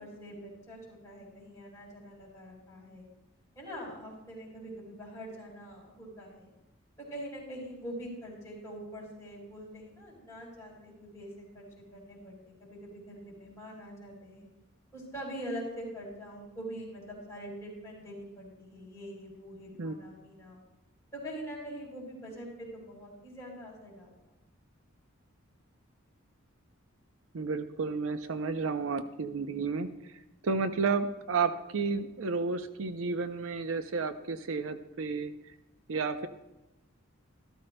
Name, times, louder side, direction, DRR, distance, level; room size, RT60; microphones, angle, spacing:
voice 1, 0.0-3.1 3.6-6.5 7.0-11.7 11.9-14.5 14.9-20.6 21.1-24.2, equal, 15° left, -5 dB, 3.8 m, -44 dB
voice 2, 27.3-29.9 30.4-35.3 35.9-36.3, right 4 dB, 80° right, 10 dB, 0.6 m, -31 dB
13.5 x 12.5 x 2.2 m, 0.98 s
head